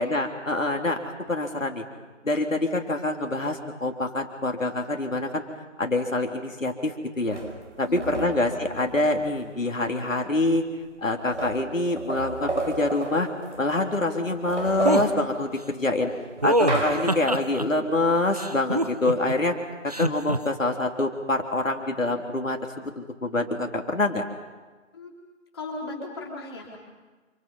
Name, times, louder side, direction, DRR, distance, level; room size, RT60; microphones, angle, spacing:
voice 1, 0.0-1.8 2.2-5.4 5.8-7.4 7.8-10.6 11.0-13.3 13.6-16.1 16.4-19.6 19.8-24.2, left 2 dB, 75° left, 2 dB, 3.5 m, -26 dB
sound 1, 7.3-9.5 10.5-10.6 10.8-13.9 14.3-17.4, right 2 dB, 60° right, 5.7 m, -33 dB
voice 2, 7.9-8.4 24.9-25.1 25.5-26.8, left 2 dB, 20° left, -2 dB, 3.9 m, -37 dB
sound 2, 14.8-15.1 16.4-17.6 18.3-19.3 19.9-20.4, right 1 dB, 30° right, 0.9 m, -24 dB
28.5 x 28.5 x 5.6 m, 1.3 s
figure-of-eight pair, 170°, 39 cm